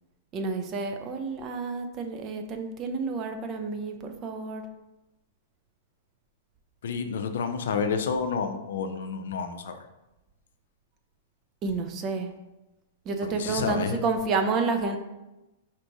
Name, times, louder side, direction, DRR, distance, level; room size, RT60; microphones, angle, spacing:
voice 1, 0.3-4.6 11.6-12.3 13.1-15.0, right 4 dB, 35° right, 5 dB, 0.6 m, -30 dB
voice 2, 6.8-9.8 13.2-14.0, left 5 dB, 75° left, 7 dB, 0.5 m, -30 dB
4.4 x 2.6 x 4.6 m, 1.0 s
hypercardioid pair, 120°, 0 cm